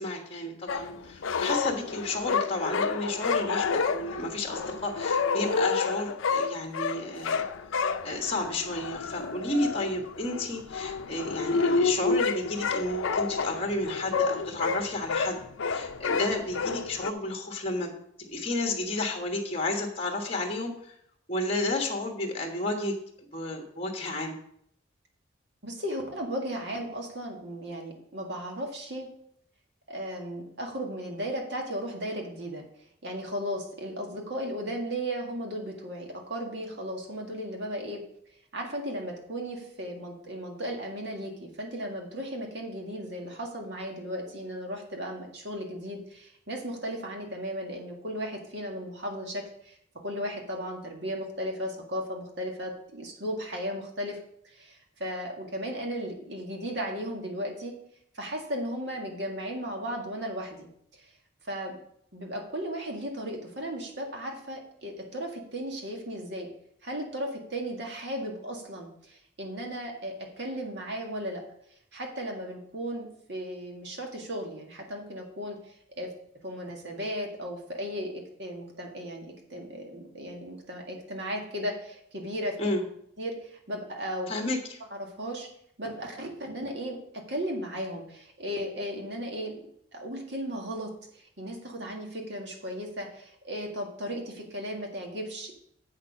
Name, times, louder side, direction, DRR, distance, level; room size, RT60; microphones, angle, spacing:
voice 1, 0.0-7.4 7.7-15.4 15.7-17.9 18.2-20.9 21.3-22.9 23.3-24.4 82.6-82.8 84.3-84.8, left 2 dB, 30° left, 2 dB, 1.3 m, -32 dB
sound 1, 0.7-17.1, left 5 dB, 85° left, 0.5 m, -29 dB
voice 2, 25.6-29.1 29.9-32.7 33.0-38.0 38.5-49.8 50.0-54.2 54.4-57.7 58.1-61.1 61.5-61.8 62.1-66.5 66.8-71.4 71.9-75.6 76.0-76.1 76.4-82.5 83.2-84.3 84.9-85.5 85.8-87.0 87.3-89.6 89.9-95.5, equal, 60° right, 1 dB, 1.9 m, -35 dB
7.9 x 6.5 x 5.3 m, 0.70 s
head